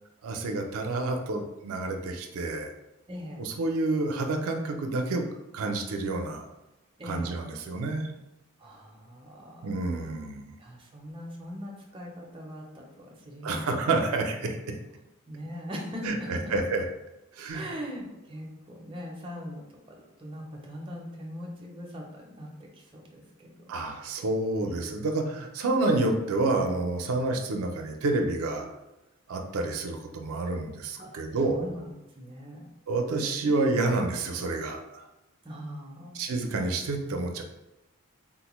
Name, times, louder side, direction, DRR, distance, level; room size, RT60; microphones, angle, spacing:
voice 1, 0.2-2.7 3.4-5.2 5.5-6.5 7.0-8.1 9.6-10.5 13.4-14.6 16.0-16.8 17.3-17.7 23.7-28.7 29.3-31.7 32.9-35.0 36.1-37.4, right 2 dB, 80° right, 3 dB, 0.4 m, -29 dB
voice 2, 3.1-3.5 7.0-7.4 8.6-9.7 10.6-13.9 15.3-16.3 17.5-19.6 19.9-24.0 24.6-24.9 31.0-31.1 31.5-31.9 32.2-32.6 35.4-36.2, equal, 25° right, -2 dB, 0.4 m, -41 dB
3.7 x 2.1 x 2.9 m, 0.97 s
head